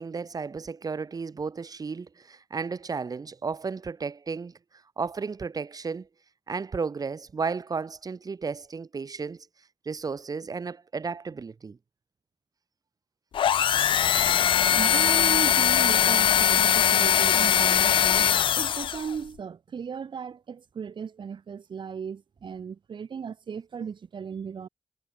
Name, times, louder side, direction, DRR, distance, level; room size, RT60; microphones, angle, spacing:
voice 1, 0.0-4.5 5.0-6.1 6.5-9.5 9.8-11.8, right 5 dB, 45° right, 5.1 m, -33 dB
sound 1, 13.3-19.1, left 9 dB, 75° left, 0.4 m, -21 dB
voice 2, 14.7-24.7, right 6 dB, 65° right, 3.3 m, -36 dB
wide cardioid pair, 130°, 9 cm